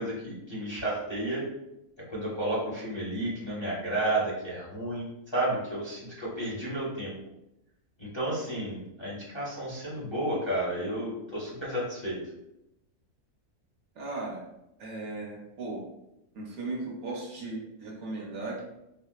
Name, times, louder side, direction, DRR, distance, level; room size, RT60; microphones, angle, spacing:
voice 1, 0.0-1.5 2.1-7.1 8.0-12.2, right 1 dB, 25° left, -7 dB, 0.6 m, -32 dB
voice 2, 13.9-14.5 14.8-15.8 16.3-18.6, right 2 dB, 55° right, -3 dB, 1.1 m, -37 dB
4.1 x 2.0 x 2.3 m, 0.87 s
omnidirectional pair, 1.6 m